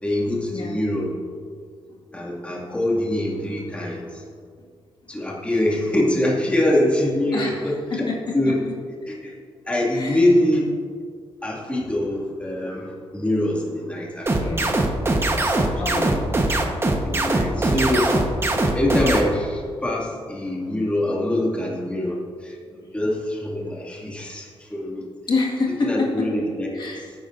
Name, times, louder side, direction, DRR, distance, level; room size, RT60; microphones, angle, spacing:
voice 1, 0.0-1.1 2.1-4.3 5.1-8.1 8.3-8.6 9.1-9.4 9.7-10.7 11.4-14.6 15.6-16.1 17.0-18.3 18.7-25.0 25.8-26.8, left 1 dB, 10° left, -4 dB, 2.4 m, -24 dB
voice 2, 7.3-8.6 9.9-10.2 14.3-14.7 15.8-16.5 22.8-22.9 25.3-26.3 26.7-27.1, left 3 dB, 50° left, -3 dB, 2.0 m, -28 dB
sound 1, 14.3-19.2, right 2 dB, 25° right, 1.2 m, -21 dB
18.5 x 9.5 x 2.7 m, 2.2 s
wide cardioid pair, 120°, 10 cm